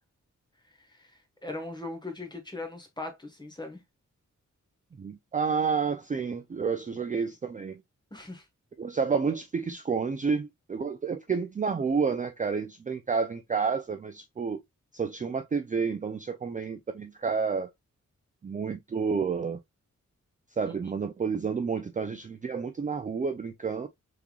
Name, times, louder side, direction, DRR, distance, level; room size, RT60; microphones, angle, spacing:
voice 1, 0.8-1.1 1.4-3.8 8.1-8.4 20.7-20.8, left 2 dB, 15° left, 1.3 m, -39 dB
voice 2, 5.0-7.8 8.8-14.6 14.9-17.7 18.4-19.6 20.6-23.9, right 5 dB, 25° right, 0.4 m, -30 dB
3.6 x 3.3 x 2.2 m
wide cardioid pair, 90°, 30 cm